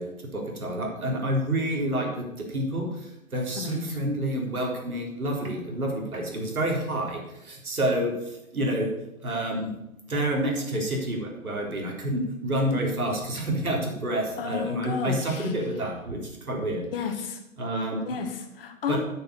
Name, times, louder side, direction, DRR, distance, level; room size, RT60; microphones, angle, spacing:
voice 1, 0.0-8.9 9.2-9.7 10.1-16.8 17.6-18.2 18.9-19.0, right 1 dB, 85° right, 0 dB, 3.9 m, -28 dB
voice 2, 3.5-4.0 14.4-15.5 16.9-17.4 18.1-19.0, left 7 dB, 40° left, 6 dB, 1.6 m, -32 dB
9.4 x 7.0 x 6.9 m, 0.87 s
hypercardioid pair, 145°, 42 cm